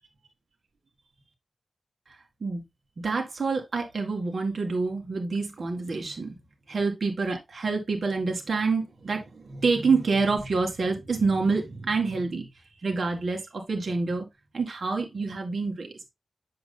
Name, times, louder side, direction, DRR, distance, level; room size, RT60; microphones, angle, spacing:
voice 1, 3.0-6.4 6.7-12.5 12.8-14.3 14.5-15.9, right 4 dB, 65° right, 2.1 m, -27 dB
7.8 x 7.2 x 2.2 m
wide cardioid pair, 75°, 0 cm